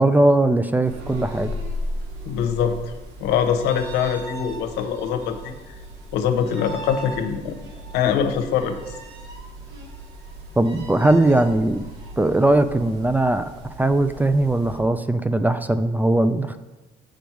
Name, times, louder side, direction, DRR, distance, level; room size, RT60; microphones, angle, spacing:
voice 1, 0.0-1.5 10.6-11.9 12.2-13.5 13.8-16.6, right 2 dB, 10° right, 11 dB, 0.3 m, -19 dB
sound 1, 0.8-14.8, equal, 85° right, 1.2 m, -37 dB
voice 2, 2.3-2.8 3.2-5.5 6.1-7.6 7.9-8.9, left 7 dB, 90° left, 6 dB, 0.8 m, -23 dB
7.0 x 5.1 x 4.6 m, 1.1 s
cardioid pair, 110°, 17 cm